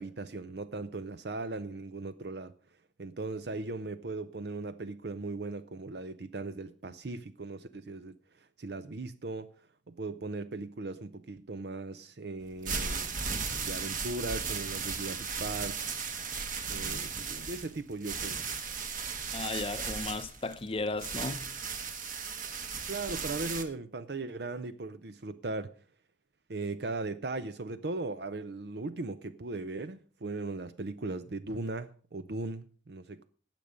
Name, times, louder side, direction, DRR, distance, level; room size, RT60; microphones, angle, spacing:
voice 1, 0.0-2.5 3.0-9.5 9.9-13.1 13.6-15.8 16.7-18.4 22.9-25.7 26.5-33.2, right 3 dB, 60° right, 0.6 m, -38 dB
sound 1, 12.4-23.6, right 5 dB, 45° right, 1.4 m, -36 dB
voice 2, 19.3-21.5, left 3 dB, 30° left, 0.7 m, -35 dB
18.5 x 6.9 x 5.1 m
head